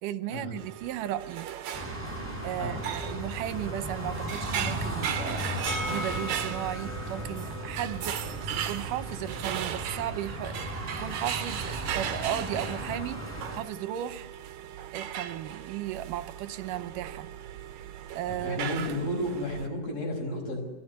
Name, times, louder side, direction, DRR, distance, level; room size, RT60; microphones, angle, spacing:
voice 1, 0.0-1.5 2.4-5.4 5.9-14.3 14.9-17.3 18.1-18.7, right 12 dB, 85° right, 13 dB, 2.5 m, -35 dB
sound 1, 0.6-19.7, right 10 dB, 65° right, 2.3 m, -37 dB
sound 2, 1.7-13.6, right 1 dB, 5° right, 7.6 m, -36 dB
voice 2, 2.6-2.9 18.4-20.6, left 1 dB, 50° left, 0 dB, 7.5 m, -32 dB
sound 3, 5.6-11.4 11.7-11.8 12.0-12.1, left 3 dB, 20° right, 2.4 m, -42 dB
25.0 x 16.5 x 9.8 m, 1.2 s
omnidirectional pair, 3.7 m